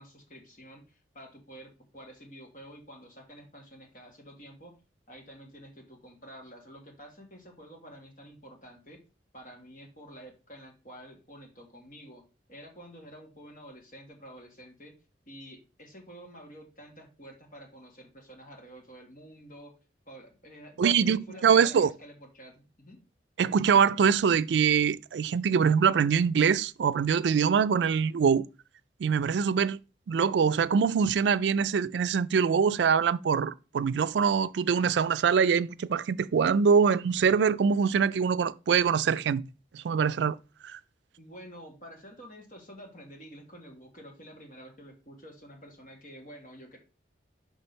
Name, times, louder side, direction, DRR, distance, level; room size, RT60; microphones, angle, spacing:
voice 1, 0.0-4.8 5.1-9.0 9.3-12.2 12.5-15.0 15.3-19.8 20.1-23.0 41.2-46.8, equal, 45° left, 1.8 m, -49 dB
voice 2, 20.8-21.9 23.4-28.5 29.0-29.8 30.1-39.4 39.7-40.4 40.6-40.8, right 6 dB, 80° right, 0.3 m, -24 dB
6.2 x 3.4 x 5.4 m
head